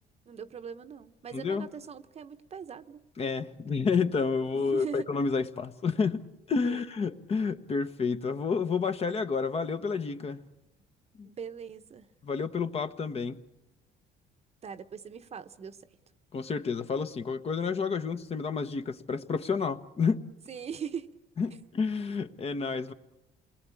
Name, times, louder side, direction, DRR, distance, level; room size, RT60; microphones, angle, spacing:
voice 1, 0.3-3.1 4.5-5.1 6.6-6.9 11.2-12.1 14.6-15.9 20.5-21.2, right 7 dB, 40° right, 1.0 m, -41 dB
voice 2, 1.3-1.7 3.2-6.2 6.5-10.4 11.2-11.3 12.2-13.4 16.3-20.2 21.4-22.9, left 5 dB, 35° left, 1.1 m, -30 dB
28.0 x 20.5 x 8.5 m
cardioid pair, 110°, 17 cm